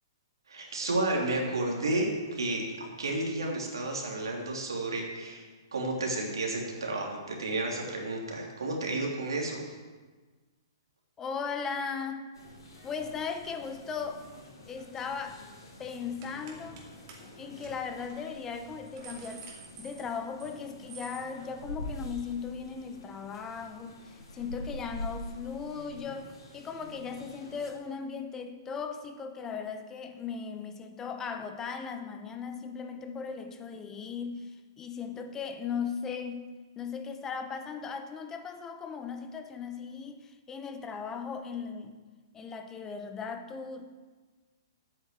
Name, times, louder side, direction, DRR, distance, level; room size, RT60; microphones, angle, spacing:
voice 1, 0.5-5.5 5.7-9.8, right 2 dB, 85° right, -1 dB, 2.9 m, -32 dB
voice 2, 11.2-12.3 12.8-14.2 14.7-15.4 15.8-16.8 17.4-19.5 19.8-36.4 36.8-42.0 42.3-43.9, left 6 dB, 20° left, 7 dB, 0.9 m, -37 dB
sound 1, 12.3-27.7, left 1 dB, 75° left, 4.0 m, -46 dB
sound 2, 14.8-15.0 15.3-15.6 16.2-16.8 17.1-17.2 17.6-17.7 18.1-18.2 18.6-20.6 20.9-21.2, right 5 dB, 45° right, 2.5 m, -49 dB
8.8 x 6.5 x 8.1 m, 1.3 s
hypercardioid pair, 125°, 2 cm